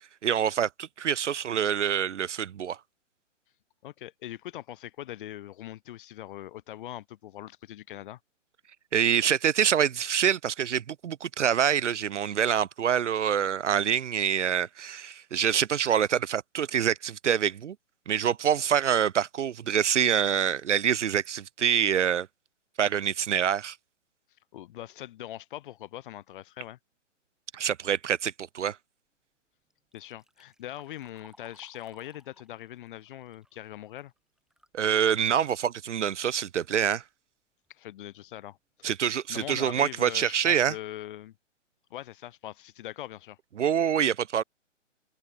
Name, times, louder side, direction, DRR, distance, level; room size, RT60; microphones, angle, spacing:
voice 1, 0.2-2.8 8.9-17.8 18.1-22.3 22.8-23.8 27.5-28.8 34.7-37.0 38.8-40.7 43.6-44.4, right 9 dB, 65° right, 0.6 m, -26 dB
voice 2, 3.8-8.2 24.5-26.8 29.9-34.1 37.7-41.4 41.9-43.4, left 13 dB, 40° left, 3.9 m, -42 dB
Liquid, 29.7-34.8 35.2-35.3 36.2-36.3 36.7-37.1 37.7-37.8 38.3-38.4 38.8-39.0, right 1 dB, ahead, 3.7 m, -61 dB
open air
figure-of-eight pair, 130°, 38 cm